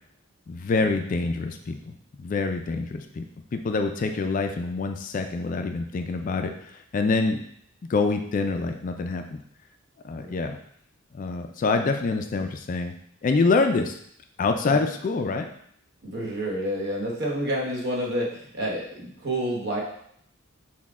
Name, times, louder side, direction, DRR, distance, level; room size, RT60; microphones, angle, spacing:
voice 1, 0.5-3.2 3.5-7.4 7.9-9.4 10.0-10.6 11.1-12.9 13.2-14.0 14.4-15.5, left 3 dB, 40° left, 6 dB, 0.3 m, -26 dB
voice 2, 16.0-19.8, right 1 dB, 55° right, -2 dB, 1.1 m, -29 dB
6.0 x 2.2 x 3.6 m, 0.67 s
head